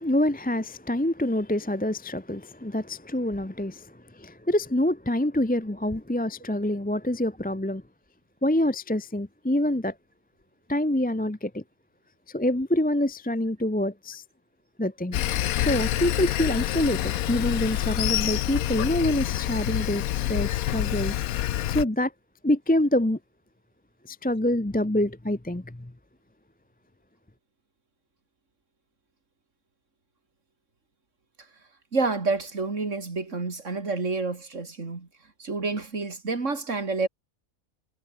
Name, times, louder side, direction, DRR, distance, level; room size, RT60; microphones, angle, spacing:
voice 1, 0.0-7.8 8.4-9.9 10.7-11.6 12.3-14.2 14.8-15.2 15.6-22.1 22.4-23.2 24.0-25.9, left 1 dB, 10° left, 0.7 m, -26 dB
Sawing, 15.1-21.8, left 12 dB, 75° left, 1.1 m, -27 dB
voice 2, 31.9-35.1 35.4-37.1, right 3 dB, 55° right, 3.2 m, -28 dB
omnidirectional pair, 1.5 m